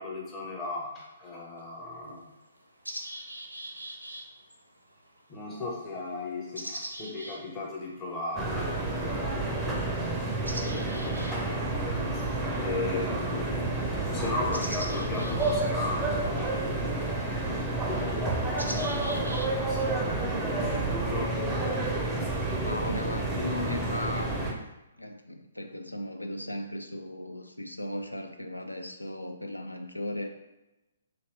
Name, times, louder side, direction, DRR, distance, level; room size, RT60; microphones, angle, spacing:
voice 1, 0.0-2.3 5.3-8.8 12.6-16.6 17.9-21.4, left 2 dB, 20° left, -3 dB, 0.8 m, -36 dB
sound 1, 0.6-0.7 1.6-1.7 2.1-19.8, right 1 dB, 85° right, 0.5 m, -44 dB
sound 2, 8.4-24.5, right 2 dB, 10° right, 0.5 m, -30 dB
voice 2, 22.6-24.5 25.0-30.3, left 1 dB, 85° left, 5 dB, 0.4 m, -36 dB
3.0 x 2.8 x 3.1 m, 0.97 s
figure-of-eight pair, 125°, 0 cm